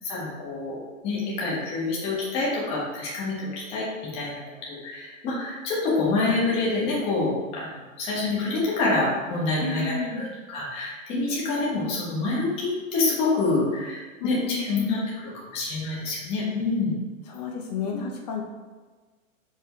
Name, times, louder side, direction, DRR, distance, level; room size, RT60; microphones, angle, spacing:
voice 1, 0.0-0.8 1.0-3.9 4.1-4.4 4.7-15.0 15.2-16.9 17.9-18.0, left 3 dB, 15° left, -6 dB, 1.2 m, -27 dB
voice 2, 9.6-10.3 14.2-14.9 17.3-18.4, left 4 dB, 30° left, 0 dB, 0.9 m, -31 dB
4.9 x 4.9 x 4.5 m, 1.3 s
hypercardioid pair, 170°, 41 cm